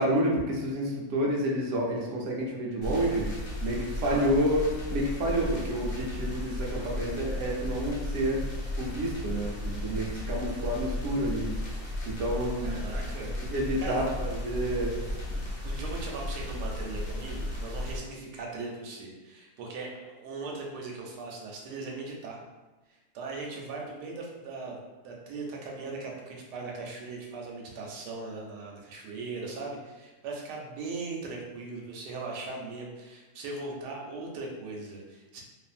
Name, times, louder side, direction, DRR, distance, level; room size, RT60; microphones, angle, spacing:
voice 1, 0.0-3.2 3.6-4.6 4.9-8.4 8.8-11.4 12.1-12.7 13.4-14.9, equal, 65° right, -2 dB, 0.8 m, -29 dB
sound 1, 2.8-18.0, left 1 dB, 55° left, 1.0 m, -35 dB
voice 2, 12.6-13.4 13.8-14.0 15.0-22.4 22.9-24.8 25.0-35.4, right 3 dB, 85° right, -1 dB, 1.2 m, -39 dB
2.7 x 2.5 x 2.4 m, 1.2 s
omnidirectional pair, 1.7 m